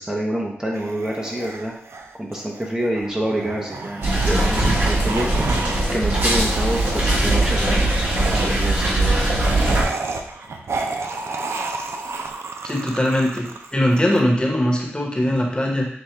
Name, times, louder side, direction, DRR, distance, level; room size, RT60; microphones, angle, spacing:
voice 1, 0.0-1.7 2.2-5.5 5.9-9.3, right 1 dB, 15° right, -2 dB, 0.8 m, -27 dB
sound 1, 0.7-5.8 6.1-7.0 8.1-14.2, right 3 dB, 75° right, 0.4 m, -31 dB
sound 2, 4.0-9.8, right 1 dB, 50° right, 1.4 m, -20 dB
voice 2, 12.6-13.4 13.7-15.9, left 1 dB, 20° left, -1 dB, 1.1 m, -20 dB
5.8 x 2.4 x 3.3 m, 0.67 s
cardioid pair, 55°, 5 cm